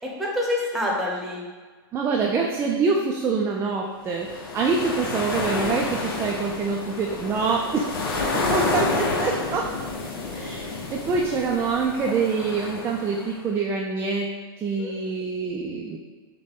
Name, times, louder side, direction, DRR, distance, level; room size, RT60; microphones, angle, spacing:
voice 1, 0.0-1.4 14.8-15.4, left 1 dB, ahead, -4 dB, 1.0 m, -28 dB
voice 2, 1.9-9.7 10.3-14.3 14.6-16.0, right 4 dB, 20° right, 0 dB, 0.4 m, -26 dB
sound 1, 4.1-13.4, left 3 dB, 70° left, 0.8 m, -29 dB
6.2 x 2.2 x 3.6 m, 1.4 s
hypercardioid pair, 135°, 13 cm